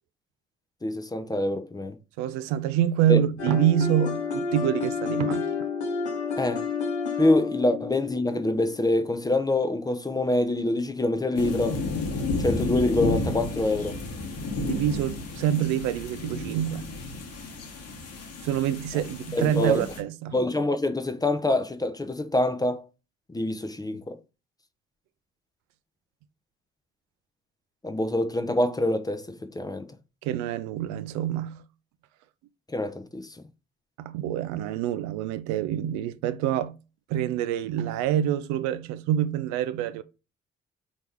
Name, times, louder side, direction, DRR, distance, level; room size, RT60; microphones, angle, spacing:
voice 1, 0.8-2.0 3.1-3.2 6.4-6.6 7.2-11.8 12.4-14.0 19.3-19.9 20.3-22.8 23.3-24.2 27.8-29.9 32.7-33.3, left 2 dB, 10° left, 0.6 m, -25 dB
voice 2, 2.2-5.4 14.6-16.8 18.4-20.4 30.2-31.6 34.0-36.8 37.1-40.0, right 11 dB, 60° right, 0.5 m, -26 dB
sound 1, 3.4-9.2, left 5 dB, 85° left, 0.8 m, -30 dB
sound 2, 11.4-20.0, left 3 dB, 50° left, 1.2 m, -32 dB
4.4 x 2.9 x 3.4 m
figure-of-eight pair, 40°, 32 cm